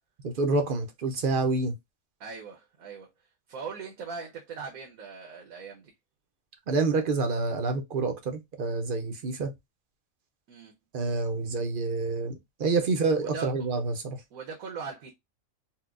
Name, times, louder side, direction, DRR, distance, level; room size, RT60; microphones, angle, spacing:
voice 1, 0.2-1.7 6.7-9.5 10.9-14.2, right 3 dB, 55° right, 0.6 m, -28 dB
voice 2, 2.2-3.1 3.5-5.9 10.5-10.7 13.2-13.7 14.3-15.1, right 5 dB, 85° right, 1.2 m, -40 dB
4.3 x 2.1 x 2.4 m
omnidirectional pair, 1.4 m